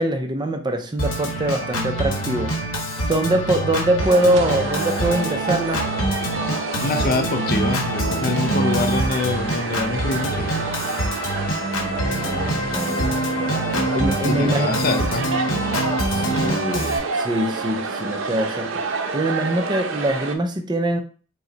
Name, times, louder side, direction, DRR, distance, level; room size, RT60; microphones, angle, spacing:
voice 1, 0.0-2.5 3.1-5.8 11.7-13.6 13.9-14.7 16.1-18.7 19.1-21.0, right 1 dB, 20° right, 6 dB, 0.4 m, -23 dB
Organ, 1.0-17.0, right 1 dB, 90° left, 1.0 m, -25 dB
sound 1, 4.0-20.4, right 4 dB, 75° right, 0.6 m, -29 dB
voice 2, 6.8-10.6 14.1-15.3, left 3 dB, 45° left, 8 dB, 0.4 m, -25 dB
5.4 x 2.1 x 3.8 m, 0.39 s
head